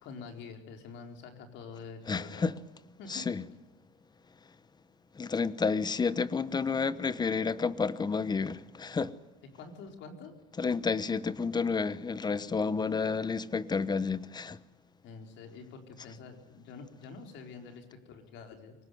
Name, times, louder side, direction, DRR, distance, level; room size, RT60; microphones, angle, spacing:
voice 1, 0.0-2.5 3.0-3.3 9.5-10.3 12.5-13.5 15.0-18.7, left 5 dB, 65° left, 4.6 m, -47 dB
voice 2, 2.1-2.6 3.1-3.4 5.1-9.1 10.6-14.6, left 5 dB, 20° left, 1.1 m, -30 dB
23.5 x 19.0 x 9.5 m
cardioid pair, 115°, 20 cm